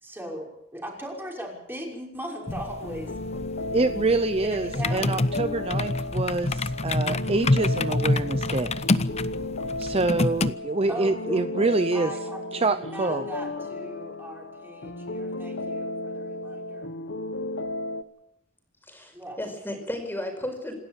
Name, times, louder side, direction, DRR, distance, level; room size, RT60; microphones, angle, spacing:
voice 1, 0.0-3.2 4.4-5.2 10.9-16.9 19.1-19.4, equal, 10° right, -1 dB, 5.9 m, -38 dB
sound 1, 2.4-18.0, left 2 dB, 70° left, 1.2 m, -34 dB
sound 2, 2.5-10.5, left 2 dB, 35° left, 0.8 m, -27 dB
voice 2, 3.7-8.7 9.8-12.1 12.5-13.2, right 3 dB, 30° right, 11 dB, 0.7 m, -26 dB
voice 3, 18.8-20.8, left 1 dB, 10° left, 4 dB, 5.5 m, -34 dB
27.0 x 13.0 x 8.9 m, 0.83 s
head